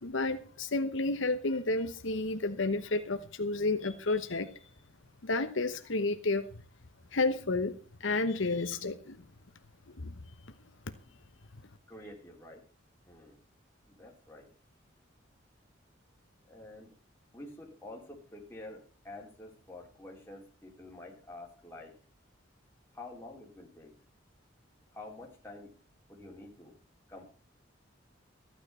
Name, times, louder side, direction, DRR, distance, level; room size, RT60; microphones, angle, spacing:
voice 1, 0.0-4.5 5.2-6.6 7.1-9.2 9.9-10.1, left 3 dB, 75° left, 8 dB, 1.0 m, -31 dB
voice 2, 11.9-12.6 13.1-13.4 13.9-14.5 16.4-16.9 17.3-21.9 22.9-23.9 24.9-25.7 26.1-26.8 27.1-27.3, left 2 dB, 10° left, -1 dB, 3.4 m, -48 dB
14.5 x 9.7 x 5.6 m, 0.38 s
head